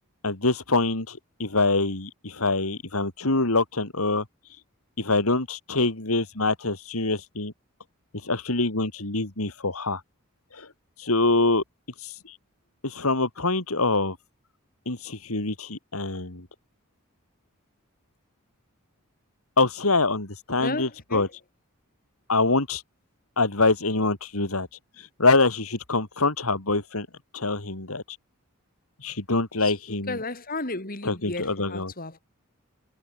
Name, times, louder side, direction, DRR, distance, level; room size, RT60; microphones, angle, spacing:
voice 1, 0.2-4.2 5.0-7.5 8.2-10.0 10.5-10.7 11.0-11.6 12.0-12.3 12.8-14.2 14.9-16.5 19.6-21.3 22.3-22.8 23.4-24.7 25.2-27.1 27.3-28.0 29.0-30.2 31.0-31.9, left 3 dB, 80° left, 3.2 m, -25 dB
voice 2, 20.6-21.3 29.6-32.2, left 2 dB, 40° left, 4.6 m, -34 dB
head